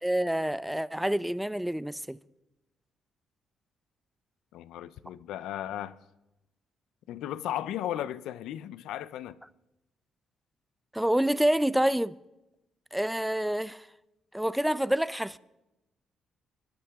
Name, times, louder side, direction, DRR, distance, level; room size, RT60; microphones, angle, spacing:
voice 1, 0.0-2.2 10.9-12.1 12.9-13.8 14.3-15.4, right 1 dB, 5° right, 0.5 m, -27 dB
voice 2, 4.5-6.0 7.1-9.4, left 12 dB, 85° left, 0.6 m, -35 dB
25.5 x 11.5 x 3.6 m
cardioid pair, 90°, 0 cm